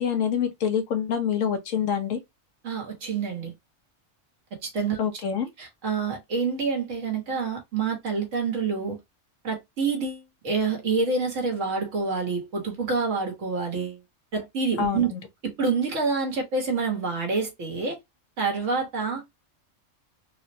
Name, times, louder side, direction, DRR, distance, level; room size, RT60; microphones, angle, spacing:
voice 1, 0.0-2.2 5.0-5.5 14.8-15.2, left 8 dB, 80° left, 1.2 m, -26 dB
voice 2, 2.6-3.5 4.6-5.2 5.6-9.0 9.4-14.0 14.3-15.1 15.4-18.0 18.4-19.2, right 4 dB, 75° right, 1.6 m, -27 dB
3.7 x 2.1 x 2.6 m
omnidirectional pair, 1.3 m